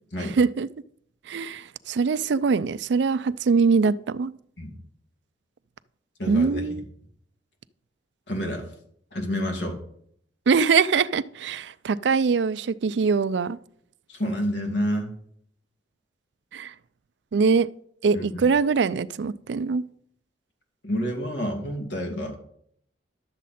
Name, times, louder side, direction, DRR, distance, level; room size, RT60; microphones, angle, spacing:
voice 1, 0.2-0.7 1.3-4.3 6.3-6.9 10.5-13.6 16.5-16.7 17.3-17.7 18.0-19.8, right 5 dB, 75° right, 0.4 m, -23 dB
voice 2, 6.2-6.8 8.3-8.7 9.1-9.8 14.1-15.1 18.1-18.3 20.8-22.4, equal, 75° left, 2.3 m, -29 dB
11.5 x 7.3 x 4.2 m
head